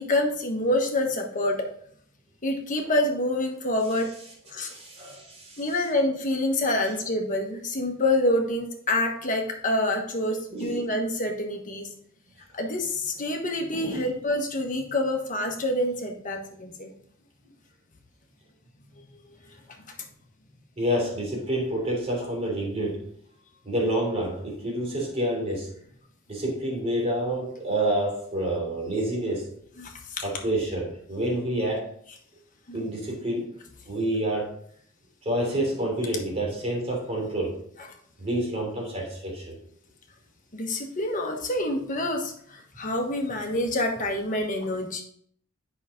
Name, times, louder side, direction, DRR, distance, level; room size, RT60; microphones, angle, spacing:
voice 1, 0.0-1.7 2.4-4.1 4.5-4.7 5.6-11.9 12.5-16.9 19.0-19.1 29.8-30.2 32.7-32.8 40.5-45.0, left 1 dB, 40° left, 2 dB, 1.3 m, -27 dB
voice 2, 4.6-5.6 10.5-10.8 13.7-14.0 20.8-23.0 23.6-25.7 26.3-29.4 30.2-31.8 32.7-33.5 33.9-34.5 35.2-37.6 38.2-39.6, right 1 dB, 30° right, -2 dB, 3.1 m, -28 dB
8.2 x 5.7 x 3.7 m, 0.63 s
head